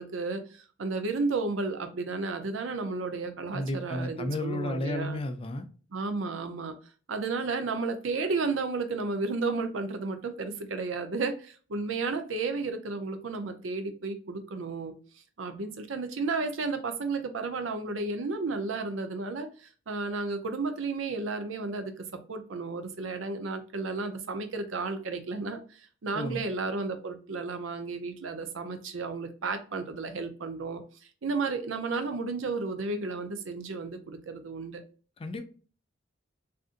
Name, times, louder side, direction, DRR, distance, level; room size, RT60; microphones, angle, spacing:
voice 1, 0.0-5.2 5.9-6.7 7.1-14.9 15.4-30.8 31.2-34.8, right 3 dB, 80° right, 0.6 m, -33 dB
voice 2, 3.5-5.7 26.1-26.4 35.2-35.4, left 1 dB, 30° left, 0.4 m, -32 dB
3.7 x 2.5 x 2.5 m
head